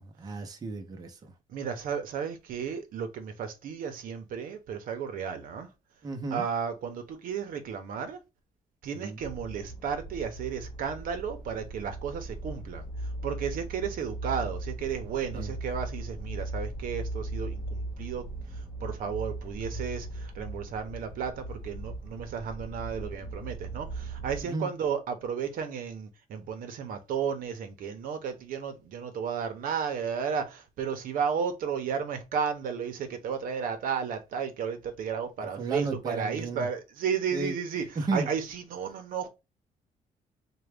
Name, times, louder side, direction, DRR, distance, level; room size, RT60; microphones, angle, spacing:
voice 1, 0.0-1.3 6.0-6.4 8.9-9.2 15.3-15.5 24.4-24.7 35.6-36.7 37.3-37.6 38.0-38.3, right 3 dB, 25° right, 0.6 m, -33 dB
voice 2, 1.5-5.7 6.3-8.2 8.8-12.9 13.2-18.2 18.8-37.8 38.1-39.3, right 7 dB, 75° right, 0.7 m, -33 dB
sound 1, 9.2-24.4, right 2 dB, 30° left, 1.0 m, -38 dB
3.8 x 2.2 x 3.3 m
cardioid pair, 175°, 15 cm